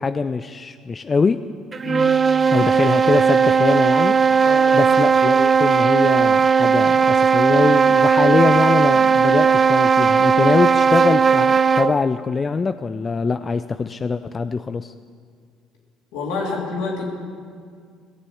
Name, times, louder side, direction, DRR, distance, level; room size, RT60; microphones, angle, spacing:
voice 1, 0.0-1.4 2.5-4.2 4.7-14.9, left 4 dB, 30° left, 11 dB, 0.4 m, -22 dB
sound 1, 1.7-12.0, right 6 dB, 35° right, 0.4 m, -16 dB
voice 2, 4.4-4.9 16.1-17.1, left 3 dB, 75° left, -2 dB, 2.9 m, -28 dB
17.5 x 6.9 x 7.8 m, 2.1 s
hypercardioid pair, 65°, 0 cm